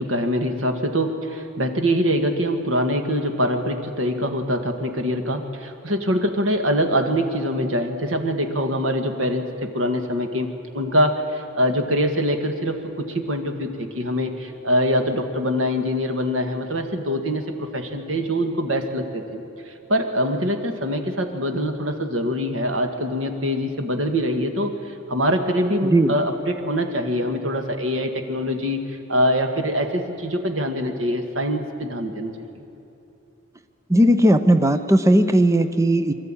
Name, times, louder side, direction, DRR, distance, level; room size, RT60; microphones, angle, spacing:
voice 1, 0.0-32.6, equal, 65° right, 5 dB, 1.8 m, -24 dB
voice 2, 33.9-36.1, right 1 dB, 15° right, 9 dB, 0.7 m, -17 dB
24.0 x 13.5 x 8.9 m, 2.9 s
head